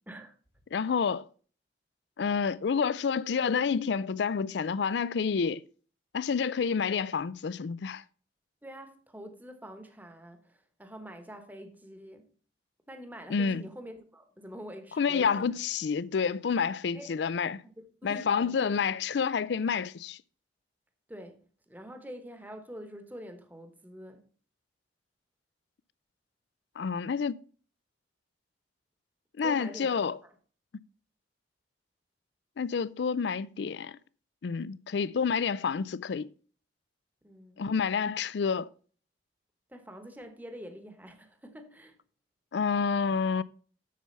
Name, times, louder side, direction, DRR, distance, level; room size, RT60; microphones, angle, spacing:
voice 1, 0.7-1.3 2.2-5.6 6.1-8.0 13.3-13.6 15.0-17.6 18.0-20.2 26.8-27.4 29.4-30.2 32.6-34.0 34.4-36.3 37.6-38.7 42.5-43.4, left 6 dB, 70° left, 0.4 m, -29 dB
voice 2, 8.6-12.3 12.9-15.5 16.9-17.2 17.6-18.5 21.1-24.3 29.4-30.3 37.2-37.6 39.7-42.0, equal, 10° right, 1.1 m, -46 dB
7.5 x 7.0 x 5.3 m
head